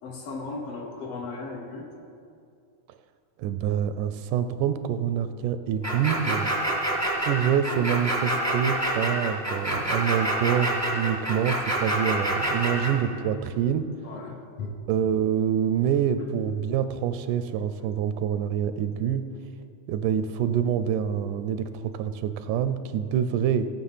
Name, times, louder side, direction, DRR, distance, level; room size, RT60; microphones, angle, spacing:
voice 1, 0.0-1.9 14.0-14.7, left 3 dB, 65° left, 2 dB, 1.7 m, -36 dB
voice 2, 3.4-6.5 7.2-13.9 14.9-19.3 19.9-23.7, right 9 dB, 90° right, 11 dB, 2.1 m, -26 dB
sound 1, 5.8-12.9, right 1 dB, 15° right, 0.5 m, -27 dB
16.5 x 7.3 x 5.6 m, 2.5 s
omnidirectional pair, 3.5 m